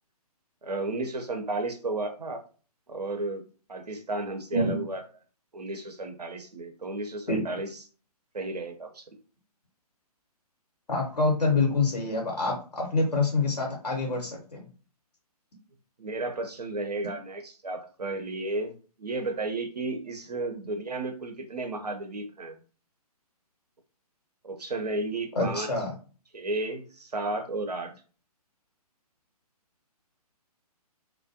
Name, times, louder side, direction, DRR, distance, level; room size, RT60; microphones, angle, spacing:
voice 1, 0.6-2.4 2.9-3.4 3.7-5.0 5.5-7.7 8.3-9.0 16.0-18.7 19.0-22.6 24.4-25.7 26.3-27.9, right 2 dB, 80° right, 5 dB, 0.7 m, -33 dB
voice 2, 10.9-14.6 25.3-25.9, left 3 dB, 80° left, 0 dB, 0.8 m, -26 dB
2.3 x 2.1 x 2.6 m, 0.38 s
figure-of-eight pair, 135°, 20 cm